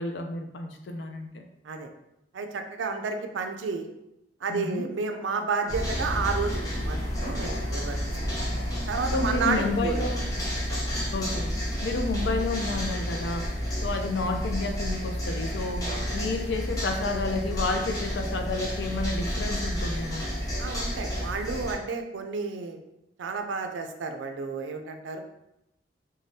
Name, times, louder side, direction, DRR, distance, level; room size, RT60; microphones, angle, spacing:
voice 1, 0.0-1.4 4.5-4.8 9.1-10.2 11.1-11.6 11.8-20.3, left 3 dB, 70° left, 5 dB, 0.4 m, -31 dB
voice 2, 2.3-3.9 4.4-7.0 7.2-8.0 8.9-10.0 10.7-10.8 20.6-22.8 23.2-25.2, right 4 dB, 85° right, 6 dB, 0.4 m, -31 dB
sound 1, 5.7-21.7, equal, 20° left, 0.6 m, -30 dB
3.3 x 2.2 x 2.6 m, 0.86 s
head